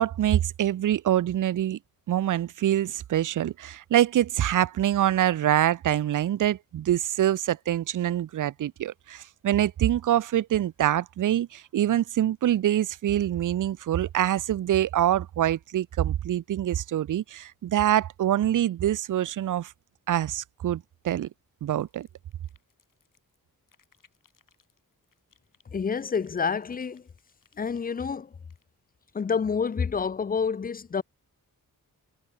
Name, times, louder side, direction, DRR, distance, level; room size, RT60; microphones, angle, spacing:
voice 1, 0.0-1.8 2.1-19.7 20.1-21.3 21.6-22.1, right 12 dB, 60° right, 0.5 m, -25 dB
sound 1, 21.8-23.4 23.7-25.6 25.9-28.6, left 6 dB, 60° left, 6.7 m, -66 dB
voice 2, 25.7-27.1 27.6-28.4 29.1-31.0, left 6 dB, 25° left, 0.4 m, -28 dB
wide cardioid pair, 135°, 36 cm